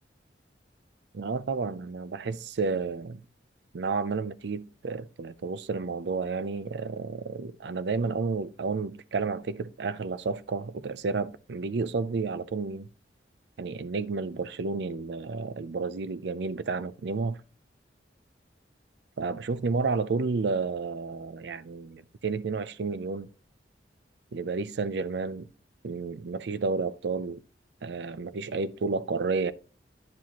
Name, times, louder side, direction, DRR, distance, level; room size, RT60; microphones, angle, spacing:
voice 1, 1.1-3.2 3.7-12.9 13.6-17.4 19.2-23.3 24.3-25.5 25.8-27.4 27.8-29.5, right 4 dB, 70° right, 0.5 m, -31 dB
9.5 x 7.3 x 2.9 m
head